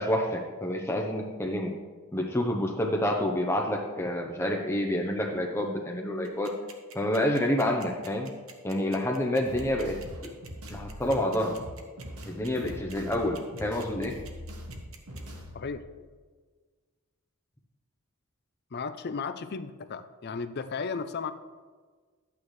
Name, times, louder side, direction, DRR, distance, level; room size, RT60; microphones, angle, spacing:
voice 1, 0.0-1.7 2.1-6.5 6.9-8.3 8.6-10.0 10.7-11.5 12.3-14.1, left 1 dB, 10° left, 2 dB, 0.7 m, -28 dB
sound 1, 6.3-15.2, right 7 dB, 65° right, 1.1 m, -48 dB
sound 2, 9.5-15.7, equal, 85° right, 1.8 m, -42 dB
voice 2, 15.5-15.9 18.7-21.3, left 5 dB, 50° left, 11 dB, 0.5 m, -34 dB
11.5 x 8.7 x 3.2 m, 1.5 s
head